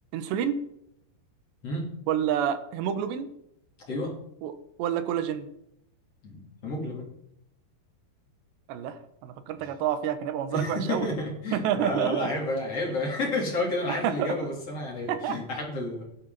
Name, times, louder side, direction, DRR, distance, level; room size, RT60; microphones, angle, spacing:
voice 1, 0.1-0.6 2.1-3.3 4.4-5.5 8.7-11.1 11.5-12.3 14.0-14.3 15.1-15.4, right 9 dB, 80° right, 11 dB, 3.2 m, -28 dB
voice 2, 6.2-7.1 10.5-16.0, left 2 dB, 35° left, -1 dB, 3.9 m, -31 dB
15.5 x 12.0 x 4.1 m, 0.77 s
omnidirectional pair, 4.9 m